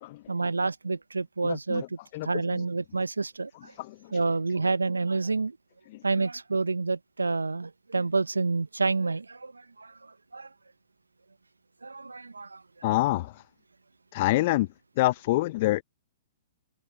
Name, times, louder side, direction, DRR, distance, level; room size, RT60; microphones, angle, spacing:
voice 1, 0.3-1.8 2.2-3.7 4.1-5.6 6.0-9.5 9.8-9.9 10.3-10.5 11.8-12.6, right 3 dB, 85° right, 0.6 m, -28 dB
voice 2, 1.4-1.9 2.1-2.6 3.6-4.2 5.9-6.2 12.8-13.4 14.1-14.7 15.0-15.8, left 18 dB, 45° left, 0.6 m, -27 dB
figure-of-eight pair, 115°, 0 cm